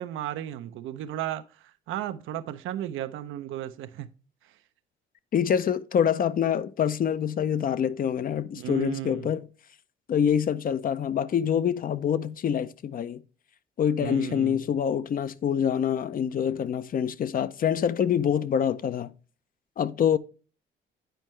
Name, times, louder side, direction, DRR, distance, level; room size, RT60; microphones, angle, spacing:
voice 1, 0.0-1.4 1.9-4.1 8.5-9.3 14.0-14.6, right 12 dB, 85° right, 0.5 m, -34 dB
voice 2, 5.3-9.5 10.1-13.2 13.8-19.1 19.8-20.2, left 8 dB, 45° left, 0.5 m, -26 dB
9.1 x 4.4 x 3.1 m
cardioid pair, 90°, 20 cm